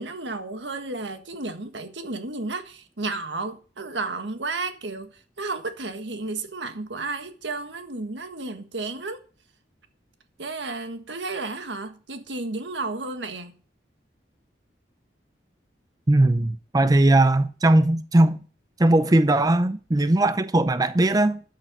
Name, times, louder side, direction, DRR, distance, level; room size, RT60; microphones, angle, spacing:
voice 1, 0.0-5.1 5.4-9.2 10.4-13.5, right 3 dB, 85° right, 1.6 m, -32 dB
voice 2, 16.1-18.4 18.8-21.4, right 1 dB, 20° right, 0.5 m, -19 dB
12.0 x 6.6 x 7.6 m
head